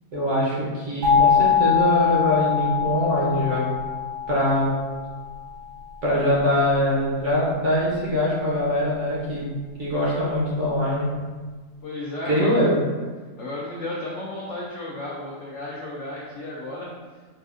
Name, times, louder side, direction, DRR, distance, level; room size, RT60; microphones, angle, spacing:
voice 1, 0.1-3.7 4.3-4.7 6.0-9.5 9.8-11.1 12.2-12.7, equal, 55° right, -6 dB, 0.9 m, -23 dB
sound 1, 1.0-5.8, left 8 dB, 70° right, 1.2 m, -23 dB
voice 2, 11.8-12.6 13.4-16.9, left 1 dB, 75° left, -4 dB, 0.6 m, -33 dB
4.3 x 2.4 x 2.4 m, 1.4 s
omnidirectional pair, 1.8 m